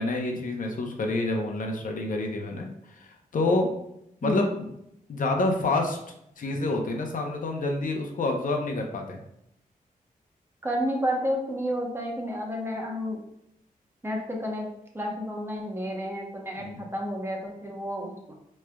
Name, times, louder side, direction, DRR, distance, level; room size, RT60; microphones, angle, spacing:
voice 1, 0.0-3.7 4.2-4.7 5.1-6.0 6.4-9.2 16.6-16.8, left 2 dB, 65° left, 2 dB, 0.7 m, -28 dB
voice 2, 10.6-13.2 14.0-14.7 14.9-18.1, equal, 15° right, -1 dB, 0.9 m, -30 dB
4.7 x 3.2 x 2.3 m, 0.78 s
wide cardioid pair, 95°, 15 cm